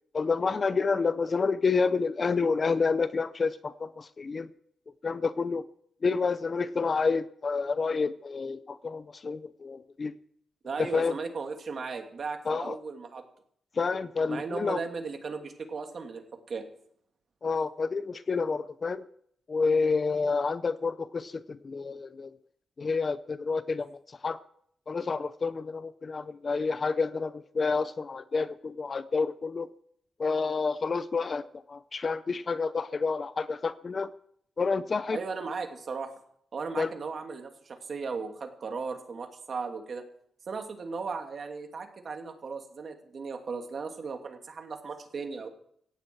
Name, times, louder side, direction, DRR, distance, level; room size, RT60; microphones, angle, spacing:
voice 1, 0.1-4.5 5.0-5.6 6.0-10.1 10.8-11.1 12.5-12.8 13.7-14.8 17.4-19.1 19.5-22.3 22.8-24.4 24.9-29.7 30.2-34.1 34.6-35.2 36.8-36.9, left 4 dB, 30° left, 14 dB, 0.6 m, -29 dB
voice 2, 10.6-13.2 14.3-16.6 35.1-36.1 36.5-40.0 40.5-45.5, right 4 dB, 40° right, 5 dB, 2.5 m, -36 dB
18.0 x 15.5 x 4.6 m, 0.67 s
wide cardioid pair, 160°, 0 cm